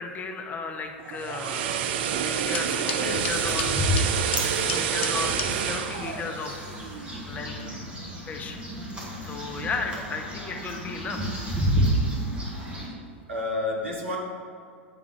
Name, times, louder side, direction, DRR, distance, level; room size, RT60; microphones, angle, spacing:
voice 1, 0.0-1.9 2.2-3.7 4.1-6.6 7.3-7.7 8.3-8.6 9.2-11.5, left 4 dB, 25° left, 4 dB, 0.6 m, -35 dB
sound 1, 1.0-7.2 7.5-7.7, right 8 dB, 55° right, 0.4 m, -28 dB
sound 2, 2.2-5.5, left 6 dB, 70° left, 0.7 m, -35 dB
voice 2, 2.8-3.3 7.5-7.8 8.9-9.0 9.8-9.9 13.3-14.2, left 2 dB, 80° right, -2 dB, 1.4 m, -32 dB
sound 3, 2.9-12.9, equal, 15° right, 1.4 m, -30 dB
9.5 x 3.6 x 3.3 m, 2.4 s
figure-of-eight pair, 95°, 7 cm